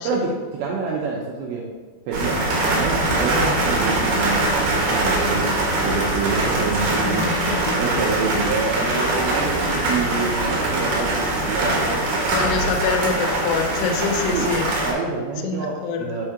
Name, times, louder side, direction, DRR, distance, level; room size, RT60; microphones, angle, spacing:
voice 1, 0.0-1.6 2.1-7.3 7.8-12.0 14.3-14.5 14.8-16.3, right 4 dB, 90° right, -2 dB, 2.5 m, -27 dB
sound 1, 2.1-14.9, right 2 dB, 70° right, 2.2 m, -22 dB
voice 2, 7.0-7.7 12.3-14.7 15.4-16.2, left 5 dB, 85° left, 3 dB, 2.4 m, -25 dB
7.0 x 3.6 x 4.6 m, 1.5 s
omnidirectional pair, 5.8 m